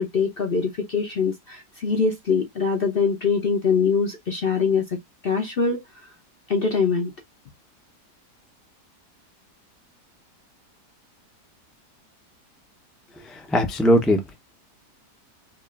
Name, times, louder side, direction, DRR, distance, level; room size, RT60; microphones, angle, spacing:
voice 1, 0.0-5.0 5.2-5.8 6.5-7.1, left 5 dB, 50° left, 0.7 m, -23 dB
voice 2, 13.2-14.3, equal, ahead, 0.4 m, -21 dB
5.0 x 2.5 x 2.4 m
omnidirectional pair, 1.8 m